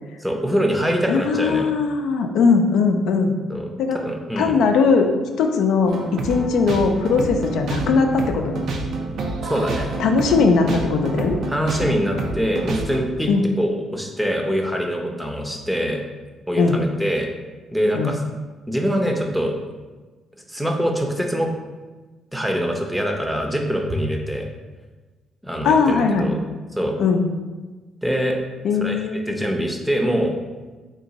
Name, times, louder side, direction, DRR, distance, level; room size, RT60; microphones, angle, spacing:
voice 1, 0.2-1.7 3.5-4.6 9.4-9.9 11.5-13.3 13.6-16.0 16.5-17.3 17.7-18.2 18.7-19.5 20.5-21.5 22.3-24.5 25.4-26.4 26.7-26.9 28.0-28.4 28.7-30.3, equal, 5° right, 2 dB, 0.6 m, -24 dB
voice 2, 1.1-3.3 3.8-4.0 4.4-5.1 5.4-8.6 10.0-11.4 13.3-13.4 16.6-16.8 17.9-18.1 25.6-26.3 27.0-27.2 28.6-29.2, left 4 dB, 80° left, 4 dB, 0.4 m, -19 dB
sound 1, 5.9-13.0, right 3 dB, 70° right, 0.5 m, -28 dB
3.7 x 2.5 x 4.0 m, 1.3 s
cardioid pair, 90°, 0 cm